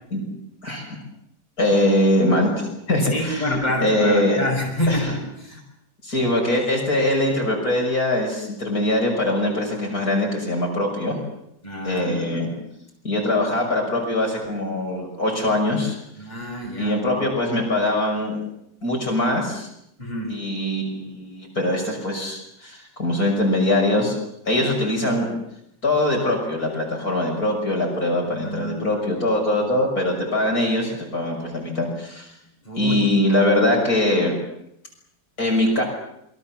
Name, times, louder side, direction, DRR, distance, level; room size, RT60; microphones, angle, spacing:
voice 1, 0.6-0.9 1.6-3.5 3.8-4.4 4.9-5.1 6.0-11.2 11.8-12.5 13.0-16.0 16.8-18.4 18.8-19.7 20.3-24.2 24.4-25.3 25.8-32.3 32.8-34.3 35.4-35.8, left 1 dB, 55° left, 0 dB, 6.8 m, -22 dB
voice 2, 3.0-5.6 11.6-12.6 16.2-17.2 20.0-20.4 28.2-29.2 29.6-29.8 32.6-33.0, left 1 dB, 25° left, 0 dB, 6.9 m, -28 dB
27.5 x 23.5 x 7.4 m, 0.77 s
omnidirectional pair, 1.8 m